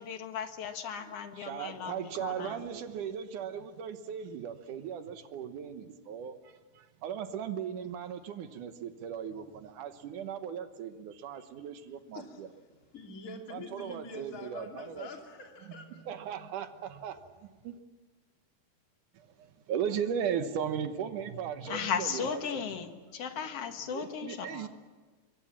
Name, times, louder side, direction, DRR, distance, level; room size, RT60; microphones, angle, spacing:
voice 1, 0.0-2.6 21.7-24.7, left 7 dB, 55° left, 6 dB, 2.1 m, -36 dB
voice 2, 1.0-12.5 13.5-15.1 15.9-17.2 17.6-17.8 19.1-22.6 23.8-24.7, right 8 dB, 70° right, 9 dB, 2.5 m, -37 dB
voice 3, 12.9-16.0, left 3 dB, 25° left, 1 dB, 2.9 m, -45 dB
24.0 x 23.5 x 7.4 m, 1.4 s
omnidirectional pair, 4.0 m